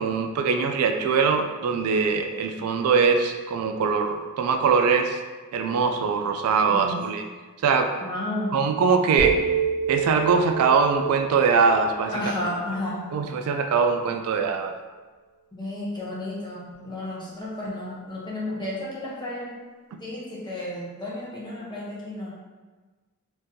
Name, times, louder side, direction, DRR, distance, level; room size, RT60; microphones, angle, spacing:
voice 1, 0.0-5.2 5.5-7.2 7.6-7.9 8.5-9.4 9.9-12.1 13.1-14.7, right 5 dB, 80° right, 5 dB, 0.3 m, -22 dB
voice 2, 8.0-8.6 12.1-13.0 15.5-19.5 20.0-22.3, left 1 dB, 20° left, -6 dB, 0.7 m, -32 dB
sound 1, 9.2-13.3, right 6 dB, 55° left, 0.9 m, -28 dB
3.7 x 2.6 x 2.6 m, 1.3 s
head